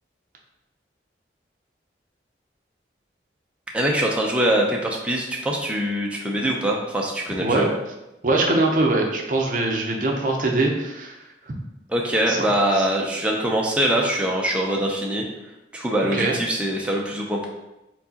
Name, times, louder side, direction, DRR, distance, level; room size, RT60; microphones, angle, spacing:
voice 1, 3.7-7.7 11.9-15.2 15.7-17.5, right 1 dB, 5° right, -1 dB, 0.5 m, -23 dB
voice 2, 8.2-11.5 12.3-12.5 12.8-12.9 16.1-16.4, right 2 dB, 45° right, 1 dB, 0.7 m, -22 dB
4.6 x 3.9 x 2.8 m, 0.96 s
head